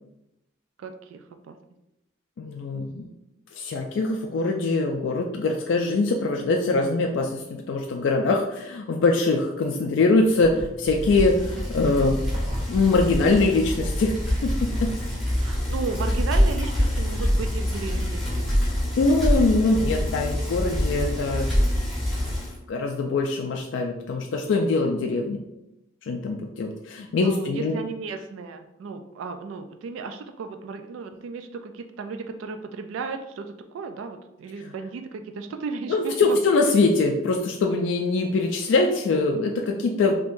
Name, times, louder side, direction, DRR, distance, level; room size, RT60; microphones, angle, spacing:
voice 1, 0.8-1.6 15.4-18.9 27.2-36.4 39.7-40.1, right 4 dB, 85° right, 7 dB, 0.3 m, -35 dB
voice 2, 2.4-3.1 3.5-12.2 12.7-14.1 14.4-14.9 19.0-21.5 22.7-25.4 26.0-27.8 35.9-40.1, left 3 dB, 70° left, 1 dB, 0.3 m, -23 dB
Zipper (clothing), 10.2-17.4, equal, 30° right, 0.5 m, -41 dB
Bicycle, 10.9-22.6, equal, ahead, 0.9 m, -25 dB
3.6 x 2.8 x 2.5 m, 0.90 s
head